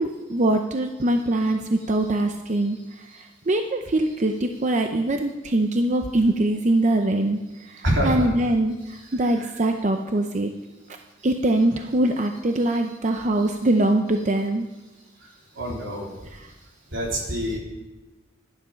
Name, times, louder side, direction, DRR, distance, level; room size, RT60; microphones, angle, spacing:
voice 1, 0.0-2.8 3.1-7.4 7.7-8.7 9.1-10.5 11.2-14.7 16.4-16.5, right 1 dB, 40° right, 5 dB, 0.6 m, -23 dB
voice 2, 7.8-8.3 8.9-9.5 15.2-16.1 16.9-17.6, equal, 80° right, -2 dB, 3.4 m, -27 dB
11.5 x 10.5 x 5.7 m, 1.1 s
head